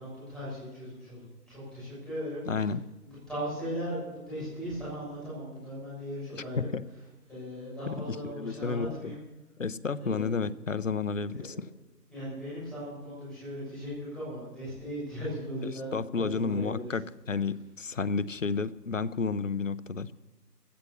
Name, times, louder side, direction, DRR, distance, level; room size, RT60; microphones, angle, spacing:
voice 1, 0.0-2.8 3.0-6.7 7.3-9.2 10.0-10.5 11.3-11.6 12.1-16.9, equal, ahead, -10 dB, 6.8 m, -38 dB
voice 2, 2.5-2.8 8.3-9.1 9.6-11.5 15.9-20.1, left 4 dB, 50° left, 18 dB, 0.7 m, -31 dB
15.5 x 13.0 x 7.0 m, 1.1 s
figure-of-eight pair, 165°, 48 cm